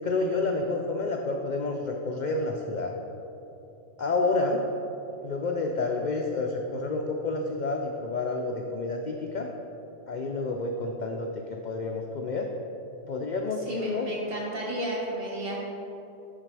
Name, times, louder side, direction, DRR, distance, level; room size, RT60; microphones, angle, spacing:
voice 1, 0.0-2.9 4.0-4.6 5.2-9.5 10.1-12.5 13.0-14.1, left 3 dB, 60° left, 2 dB, 0.5 m, -29 dB
voice 2, 13.6-15.6, right 1 dB, 50° right, -4 dB, 1.6 m, -32 dB
10.0 x 4.0 x 4.7 m, 2.9 s
omnidirectional pair, 1.3 m